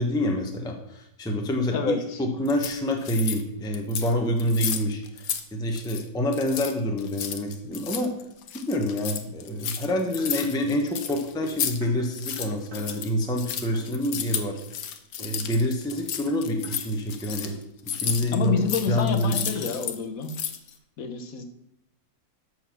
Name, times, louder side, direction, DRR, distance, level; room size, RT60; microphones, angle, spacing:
voice 1, 0.0-8.1 8.5-14.6 15.2-17.6 17.8-18.6 18.8-19.5, left 1 dB, 5° left, 2 dB, 0.9 m, -27 dB
voice 2, 1.7-2.2 18.3-20.3 21.0-21.4, left 5 dB, 55° left, 6 dB, 1.4 m, -28 dB
sound 1, 2.5-3.4 3.7-4.1 4.4-5.4 5.7-6.0 6.3-11.8 12.0-20.0 20.2-20.7, left 9 dB, 70° left, 1.4 m, -33 dB
sound 2, 10.2-13.4 13.7-13.9 14.5-14.6 15.2-16.9 17.4-17.6 18.5-19.8, right 1 dB, 75° right, 2.8 m, -44 dB
13.0 x 4.5 x 6.1 m, 0.79 s
omnidirectional pair, 2.0 m